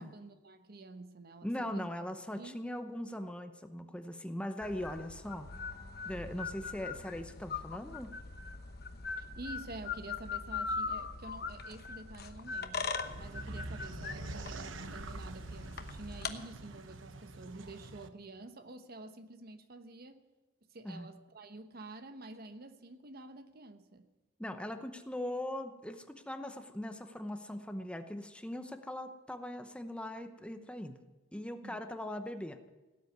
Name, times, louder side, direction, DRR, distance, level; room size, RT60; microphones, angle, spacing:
voice 1, 0.0-1.9 2.3-2.6 9.2-20.2 20.7-24.1 31.6-31.8, right 2 dB, 55° right, 9 dB, 1.0 m, -49 dB
voice 2, 1.4-5.5 6.0-8.1 20.8-21.1 24.4-30.9 31.3-32.6, left 1 dB, 5° left, 7 dB, 0.8 m, -40 dB
sound 1, 4.6-16.3, left 4 dB, 55° left, 1.1 m, -41 dB
sound 2, 13.0-18.1, right 2 dB, 90° right, 1.0 m, -45 dB
17.5 x 8.3 x 9.4 m, 1.1 s
head